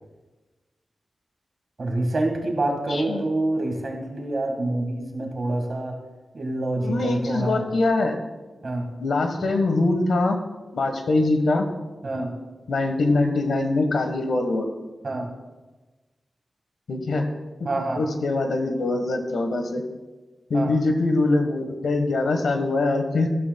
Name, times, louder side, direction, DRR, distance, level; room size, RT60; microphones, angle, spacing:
voice 1, 1.8-6.0 6.3-7.7 8.6-8.9 12.0-12.3 15.0-15.3 17.6-18.0 20.5-20.7, right 2 dB, 45° right, 2 dB, 1.8 m, -26 dB
voice 2, 2.9-3.2 6.8-8.2 9.0-10.4 10.7-11.7 12.7-14.6 16.9-17.3 18.0-19.8 20.5-23.3, left 2 dB, 90° left, 6 dB, 1.3 m, -23 dB
14.0 x 12.5 x 2.3 m, 1.2 s
wide cardioid pair, 165°, 0 cm